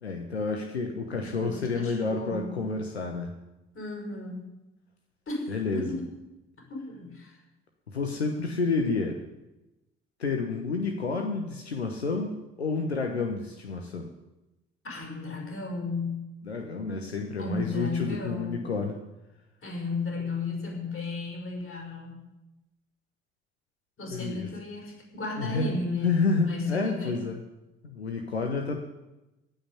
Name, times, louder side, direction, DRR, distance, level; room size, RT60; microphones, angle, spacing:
voice 1, 0.0-3.3 5.5-6.0 7.9-9.2 10.2-14.1 16.4-19.0 24.1-24.5 25.4-25.7 26.0-27.4 27.8-28.8, left 4 dB, 90° left, 4 dB, 1.0 m, -29 dB
voice 2, 1.1-2.6 3.7-4.5 5.3-6.1 6.7-7.4 14.8-16.2 17.4-18.7 19.6-22.2 24.0-27.2, left 3 dB, 40° left, 1 dB, 5.8 m, -34 dB
16.5 x 5.7 x 9.8 m, 1.0 s
figure-of-eight pair, 50°, 31 cm